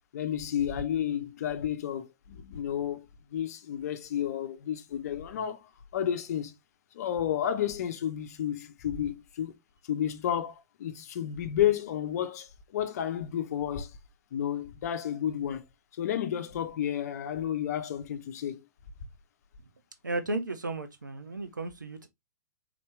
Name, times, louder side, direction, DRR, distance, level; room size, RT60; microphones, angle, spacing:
voice 1, 0.1-3.1 3.3-6.5 6.9-9.5 9.9-13.9 14.3-15.6 16.0-18.6, left 10 dB, 60° left, 0.7 m, -31 dB
voice 2, 20.0-22.1, right 2 dB, 90° right, 0.6 m, -34 dB
4.2 x 2.9 x 3.2 m
figure-of-eight pair, 105°, 10 cm